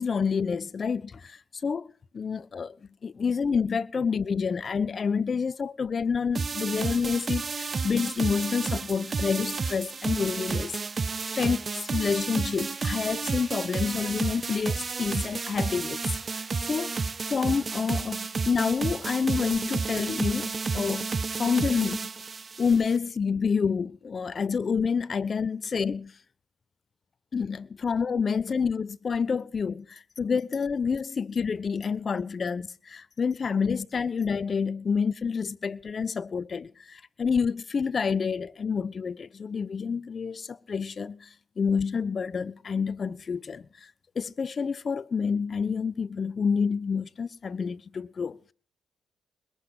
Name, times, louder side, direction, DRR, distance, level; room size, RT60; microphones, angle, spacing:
voice 1, 0.0-2.7 3.0-10.8 11.3-16.0 16.7-17.0 17.3-21.1 21.4-22.0 22.6-26.1 27.3-41.3 41.6-43.7 44.1-48.4, left 6 dB, 50° left, 1.0 m, -28 dB
sound 1, 6.4-23.0, right 4 dB, 45° right, 0.7 m, -31 dB
21.0 x 8.1 x 8.0 m
supercardioid pair, 55°, 0 cm